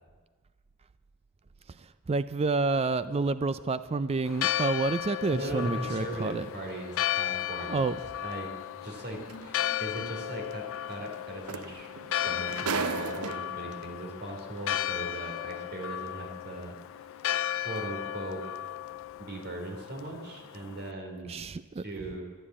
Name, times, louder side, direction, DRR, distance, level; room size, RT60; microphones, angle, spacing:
voice 1, 2.1-6.5 7.7-8.0 21.3-21.8, right 3 dB, 25° right, 14 dB, 0.4 m, -29 dB
sound 1, 2.9-8.2 8.8-13.7, left 1 dB, 40° left, 1.5 m, -55 dB
Church bell, 4.3-20.9, left 12 dB, 60° left, 0.4 m, -35 dB
voice 2, 5.3-7.8 8.2-8.5 8.8-11.9 12.2-16.8 17.2-18.4 19.2-21.5 21.8-22.2, right 1 dB, 50° right, 1 dB, 3.4 m, -39 dB
sound 2, 9.3-9.4 11.1-11.2 11.5-13.7 14.7-14.8, right 5 dB, 70° right, 0.7 m, -34 dB
12.5 x 11.0 x 8.5 m, 1.4 s
head